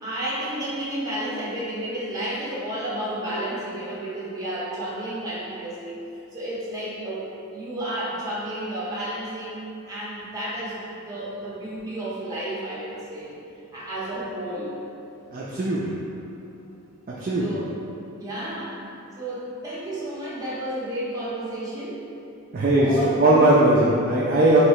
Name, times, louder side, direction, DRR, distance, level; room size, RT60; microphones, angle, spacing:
voice 1, 0.0-6.0 6.3-7.2 7.5-9.6 9.9-10.8 11.0-13.3 13.7-14.7 17.4-17.7 18.2-18.9 19.2-22.0 22.7-23.7, right 1 dB, 15° right, -8 dB, 0.9 m, -31 dB
voice 2, 15.3-15.9 17.1-17.5 22.5-22.9 23.2-24.6, right 2 dB, 40° right, -6 dB, 0.4 m, -19 dB
3.1 x 3.0 x 4.6 m, 2.7 s
head